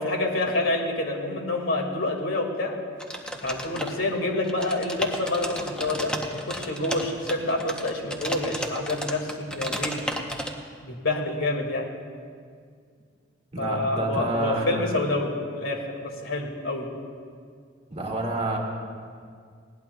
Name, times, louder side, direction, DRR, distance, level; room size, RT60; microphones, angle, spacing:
voice 1, 0.0-2.7 3.4-10.0 10.8-11.9 13.6-16.9, left 2 dB, 85° left, 1 dB, 2.1 m, -28 dB
sound 1, 3.0-4.2 4.4-10.5, equal, 5° left, 0.8 m, -33 dB
voice 2, 13.5-14.9 17.9-18.6, right 1 dB, 30° right, -2 dB, 2.0 m, -28 dB
20.0 x 17.5 x 2.3 m, 2.1 s
head